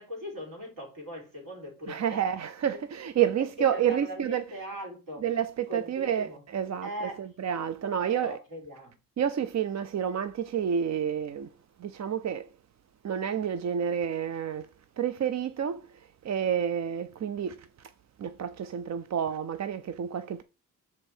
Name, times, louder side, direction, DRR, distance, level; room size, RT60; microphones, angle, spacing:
voice 1, 0.0-2.2 3.4-5.2 5.7-6.4 6.8-7.3 8.1-9.0, equal, 75° right, 3.9 m, -40 dB
voice 2, 1.9-4.4 5.2-8.4 9.2-11.5 11.8-12.5 13.0-14.7 15.0-17.9 18.2-20.4, right 8 dB, 50° right, 0.5 m, -29 dB
6.9 x 5.1 x 4.4 m
cardioid pair, 90°, 34 cm